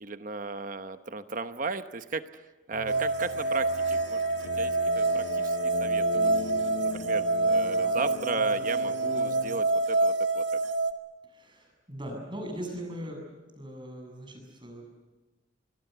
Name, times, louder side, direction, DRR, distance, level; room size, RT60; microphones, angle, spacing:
voice 1, 0.0-6.3 6.8-10.6, right 4 dB, 45° right, 10 dB, 0.9 m, -36 dB
sound 1, 2.7-9.6, left 3 dB, 70° left, 0.8 m, -39 dB
sound 2, 2.9-10.9, right 3 dB, 85° right, 1.7 m, -27 dB
voice 2, 11.3-13.2 13.6-14.9, equal, 25° right, 3 dB, 7.4 m, -39 dB
25.5 x 22.0 x 8.1 m, 1.2 s
head